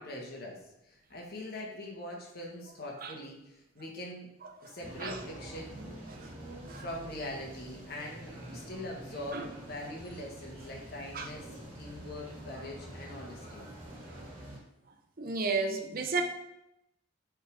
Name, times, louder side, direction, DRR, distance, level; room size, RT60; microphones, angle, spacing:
voice 1, 0.0-4.3 4.6-5.8 6.8-11.5 11.7-13.7, left 1 dB, 50° left, -2 dB, 1.5 m, -42 dB
sound 1, 4.8-14.6, right 1 dB, 30° right, 2.1 m, -46 dB
voice 2, 15.2-16.2, right 4 dB, 45° right, 4 dB, 0.8 m, -32 dB
6.5 x 3.8 x 4.8 m, 0.84 s
head